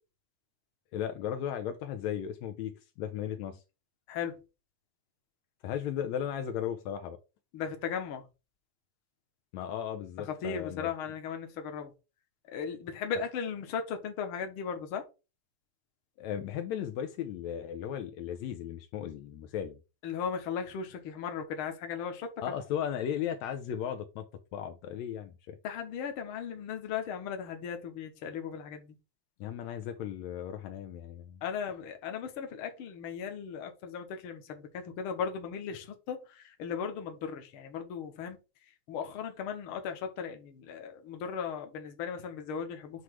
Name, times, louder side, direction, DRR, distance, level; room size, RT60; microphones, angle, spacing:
voice 1, 0.9-2.7 3.0-3.6 5.6-7.2 9.5-10.9 16.2-19.8 22.4-24.3 24.5-25.6 29.4-31.4, left 9 dB, 80° left, 1.9 m, -36 dB
voice 2, 4.1-4.4 7.5-8.2 10.2-11.9 12.5-15.1 20.0-22.5 25.6-29.0 31.4-38.4 38.9-43.0, left 7 dB, 55° left, 1.7 m, -37 dB
7.8 x 3.1 x 4.7 m
omnidirectional pair, 3.3 m